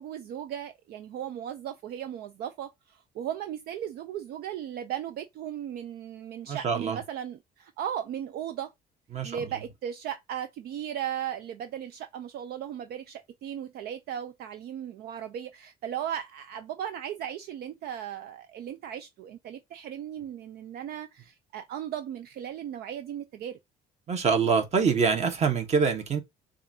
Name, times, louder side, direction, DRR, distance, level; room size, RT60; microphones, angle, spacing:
voice 1, 0.0-8.7 9.2-23.6, right 10 dB, 70° right, 0.5 m, -36 dB
voice 2, 6.5-7.0 9.1-9.4 24.1-26.2, right 5 dB, 40° right, 1.2 m, -25 dB
6.7 x 2.5 x 2.7 m
cardioid pair, 110°, 17 cm